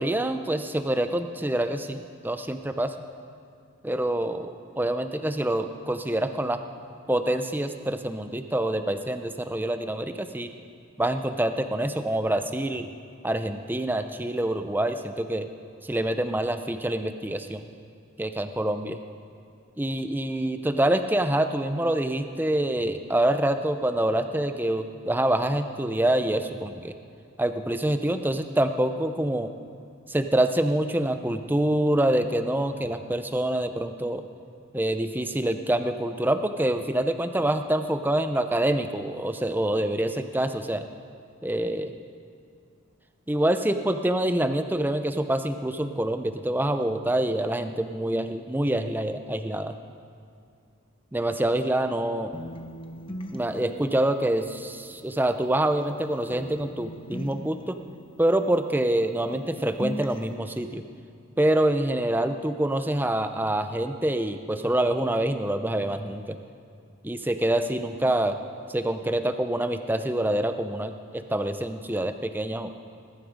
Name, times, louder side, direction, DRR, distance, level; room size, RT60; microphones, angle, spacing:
voice 1, 0.0-2.9 3.8-6.6 7.1-10.5 11.0-12.9 13.2-15.5 15.8-17.6 18.2-19.0 19.8-26.9 27.4-29.5 30.1-34.2 34.7-40.9 41.4-41.9 43.3-49.7 51.1-52.3 53.3-57.8 58.2-60.8 61.4-66.4 67.0-68.4 68.7-72.7, right 1 dB, 10° right, 8 dB, 0.5 m, -26 dB
sound 1, 52.3-56.0 56.3-59.1 59.3-60.3, equal, 25° left, 0.8 m, -40 dB
20.5 x 11.5 x 5.1 m, 2.4 s
head